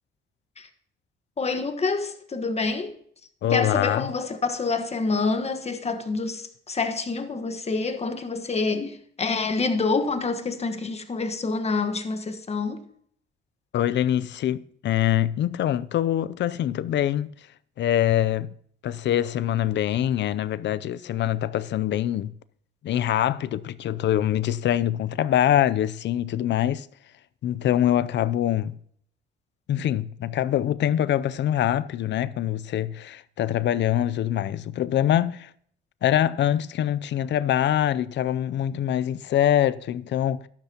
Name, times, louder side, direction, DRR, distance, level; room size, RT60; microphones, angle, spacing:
voice 1, 1.4-2.9 3.5-12.8, left 4 dB, 30° left, 1.4 m, -27 dB
voice 2, 3.4-4.1 13.7-17.3 17.8-18.5 18.8-22.3 22.8-26.9 27.4-28.8 29.7-35.5 36.0-40.5, left 11 dB, 65° left, 0.5 m, -24 dB
12.0 x 12.0 x 2.9 m
cardioid pair, 90°, 20 cm